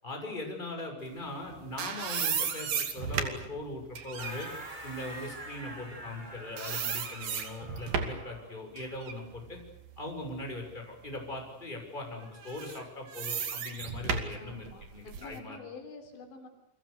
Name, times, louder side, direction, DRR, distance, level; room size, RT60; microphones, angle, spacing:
voice 1, 0.0-4.5 4.8-9.6 10.0-15.6, left 2 dB, 10° left, 2 dB, 6.2 m, -40 dB
sound 1, 1.3-6.3 6.6-8.3 8.8-10.7 11.2-11.3 12.4-15.4, right 6 dB, 50° right, 3.8 m, -35 dB
sound 2, 4.2-8.6, right 1 dB, 10° right, 3.1 m, -45 dB
voice 2, 14.3-16.5, left 4 dB, 70° left, 4 dB, 5.7 m, -48 dB
29.5 x 24.5 x 6.7 m, 0.87 s
omnidirectional pair, 5.4 m